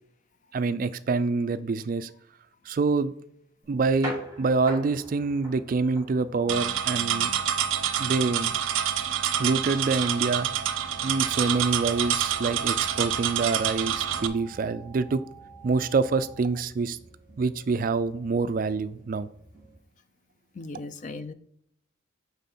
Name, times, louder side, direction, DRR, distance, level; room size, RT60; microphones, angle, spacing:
voice 1, 0.5-2.1 2.7-3.1 3.7-7.3 8.0-8.6 9.4-10.5 11.0-15.2 15.6-17.0 17.4-19.3, right 4 dB, 40° right, 14 dB, 0.3 m, -26 dB
sound 1, 3.6-19.8, equal, 15° right, 1.8 m, -45 dB
sound 2, 6.4-16.4, right 7 dB, 20° left, 0.8 m, -50 dB
sound 3, 6.5-14.3, right 9 dB, 85° right, 0.6 m, -27 dB
voice 2, 20.5-21.3, left 3 dB, 40° left, 12 dB, 0.4 m, -38 dB
8.9 x 3.7 x 4.2 m, 0.70 s
head